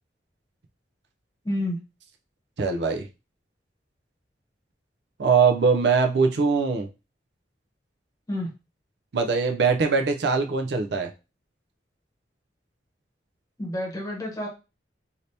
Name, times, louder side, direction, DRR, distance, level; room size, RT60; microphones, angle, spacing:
voice 1, 1.4-1.8 8.3-8.5 13.6-14.5, left 1 dB, 20° left, -2 dB, 1.0 m, -29 dB
voice 2, 2.6-3.1 5.2-6.9 9.1-11.1, right 5 dB, 65° right, 4 dB, 0.5 m, -22 dB
2.8 x 2.7 x 3.2 m, 0.29 s
head